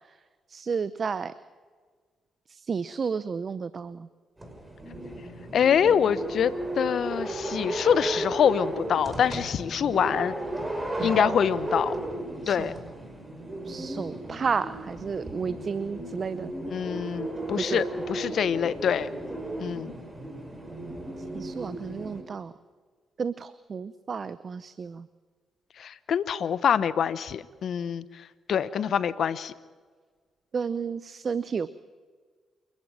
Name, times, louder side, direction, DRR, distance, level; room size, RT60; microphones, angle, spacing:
voice 1, 0.5-1.3 2.5-4.1 11.0-11.3 12.4-12.7 13.6-16.5 17.6-17.8 21.3-22.5 23.2-25.1 30.5-31.7, right 5 dB, 50° right, 16 dB, 0.7 m, -32 dB
sound 1, 4.4-22.2, right 1 dB, 20° right, 5.6 m, -35 dB
voice 2, 5.5-10.3 11.0-11.9 12.5-12.7 16.7-19.1 19.6-19.9 25.8-28.0 28.5-29.5, left 8 dB, 65° left, 16 dB, 1.0 m, -25 dB
28.5 x 12.0 x 8.9 m, 1.5 s
hypercardioid pair, 45°, 0 cm